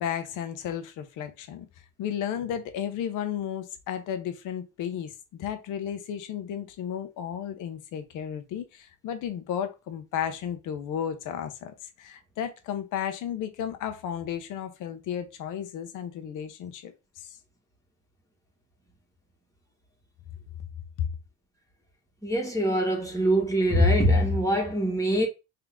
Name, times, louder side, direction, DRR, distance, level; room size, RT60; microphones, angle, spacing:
voice 1, 0.0-1.7 2.0-17.4 21.0-21.1, left 9 dB, 90° left, 0.8 m, -33 dB
voice 2, 22.2-25.3, equal, 10° left, 1.6 m, -23 dB
3.7 x 2.8 x 3.5 m
cardioid pair, 90°, 30 cm